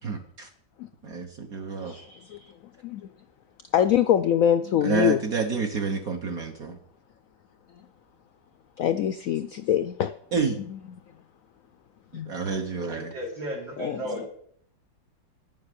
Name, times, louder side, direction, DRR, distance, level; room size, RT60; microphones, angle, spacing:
voice 1, 0.0-0.5 1.0-1.9 4.8-6.8 10.3-10.6 12.3-13.1, right 5 dB, 55° right, 2 dB, 1.4 m, -29 dB
voice 2, 1.8-2.5 2.8-3.1 3.7-5.2 8.8-10.1 10.7-10.8 12.1-12.4 13.8-14.0, left 10 dB, 80° left, 11 dB, 0.7 m, -24 dB
voice 3, 12.9-14.3, equal, 85° right, -2 dB, 3.9 m, -34 dB
10.0 x 7.1 x 6.7 m, 0.64 s
omnidirectional pair, 2.0 m